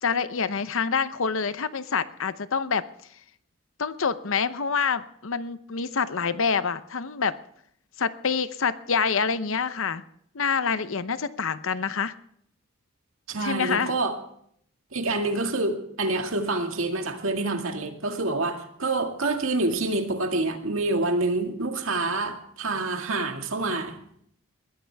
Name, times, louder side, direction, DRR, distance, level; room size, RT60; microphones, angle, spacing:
voice 1, 0.0-2.8 3.8-7.3 8.0-10.0 10.3-12.1 13.4-13.9, left 5 dB, 65° left, 13 dB, 0.8 m, -26 dB
voice 2, 13.3-14.2 14.9-24.0, right 2 dB, 65° right, 4 dB, 2.1 m, -27 dB
21.0 x 14.5 x 3.5 m, 0.67 s
head